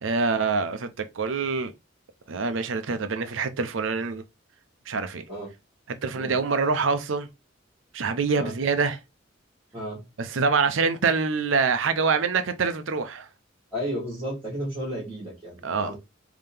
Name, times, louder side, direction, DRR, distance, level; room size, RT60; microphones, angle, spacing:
voice 1, 0.0-1.7 2.3-4.2 4.9-5.2 6.0-7.3 7.9-9.0 10.2-13.3 15.6-15.9, right 4 dB, 75° right, 0.6 m, -25 dB
voice 2, 13.7-15.9, equal, 20° right, 1.6 m, -33 dB
3.6 x 2.8 x 3.4 m
head